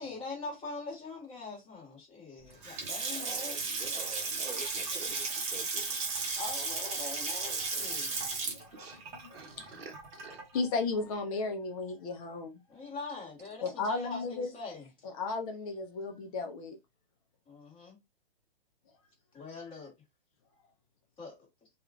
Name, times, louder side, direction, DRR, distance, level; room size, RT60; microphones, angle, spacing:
voice 1, 0.0-3.6 6.4-8.2 12.7-14.9 17.5-18.0 19.3-19.9 21.2-21.4, left 4 dB, 20° left, 1.5 m, -43 dB
Water tap faucet / Sink (filling or washing) / Splash splatter, 2.5-10.6, right 4 dB, 25° right, 0.9 m, -35 dB
voice 2, 3.1-5.9 8.7-10.4, right 3 dB, 85° right, 0.9 m, -48 dB
voice 3, 10.5-12.6 13.6-14.5 15.0-16.8, left 3 dB, 35° left, 0.6 m, -34 dB
2.8 x 2.4 x 2.4 m
hypercardioid pair, 130°, 29 cm